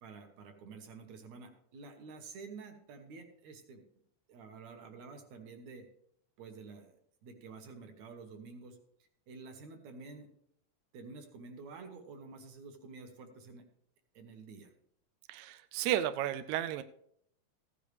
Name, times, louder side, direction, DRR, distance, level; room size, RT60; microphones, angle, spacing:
voice 1, 0.0-3.8 4.3-5.9 6.4-8.8 9.3-10.3 10.9-13.6 14.1-14.7, right 4 dB, 65° right, 6 dB, 2.3 m, -50 dB
voice 2, 15.3-16.8, right 11 dB, 85° right, 10 dB, 1.6 m, -33 dB
15.0 x 10.0 x 3.3 m, 0.70 s
omnidirectional pair, 3.8 m